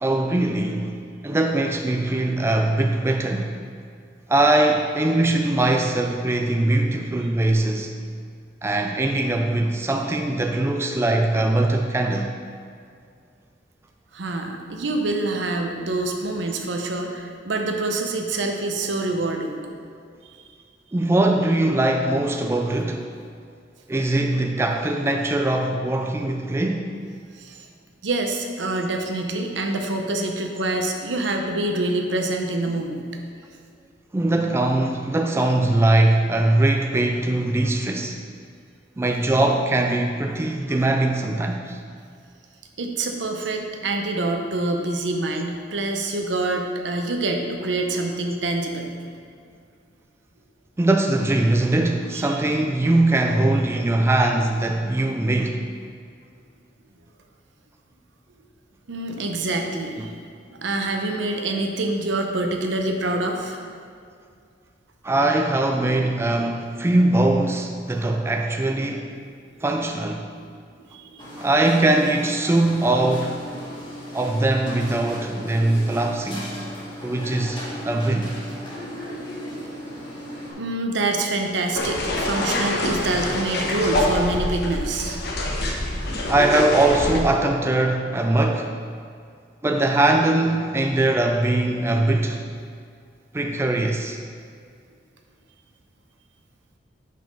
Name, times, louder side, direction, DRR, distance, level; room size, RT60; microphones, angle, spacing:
voice 1, 0.0-1.0 1.2-3.6 4.3-7.9 8.6-12.3 14.3-14.4 20.9-23.1 23.9-27.0 34.1-38.2 39.0-41.8 50.8-55.7 60.0-60.1 65.0-69.1 69.6-70.3 71.4-73.4 74.1-76.5 77.0-78.3 86.3-88.7 89.6-92.5 93.3-94.2, right 2 dB, 15° right, 3 dB, 0.3 m, -21 dB
voice 2, 14.1-19.6 20.3-20.4 27.4-27.6 28.0-33.0 42.8-48.9 52.1-52.4 58.9-60.1 60.5-63.7 70.9-71.2 80.6-85.2, right 2 dB, 75° right, 3 dB, 0.8 m, -26 dB
sound 1, 71.2-80.5, equal, 25° left, 1.7 m, -36 dB
sound 2, 81.8-87.2, left 1 dB, 60° left, 1.0 m, -25 dB
5.8 x 5.1 x 5.4 m, 2.3 s
head